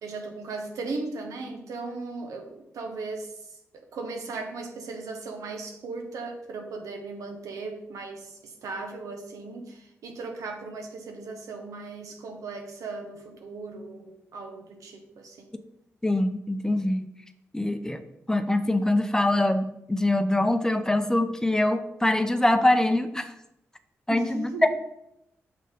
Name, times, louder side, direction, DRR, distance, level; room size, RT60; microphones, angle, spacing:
voice 1, 0.0-3.6 3.9-15.5 24.1-24.7, right 3 dB, 90° right, 4 dB, 0.9 m, -37 dB
voice 2, 16.0-17.1 17.5-18.0 18.3-23.3 24.1-24.7, left 1 dB, 10° left, 9 dB, 0.5 m, -24 dB
6.4 x 4.3 x 3.6 m, 0.82 s
cardioid pair, 65°, 5 cm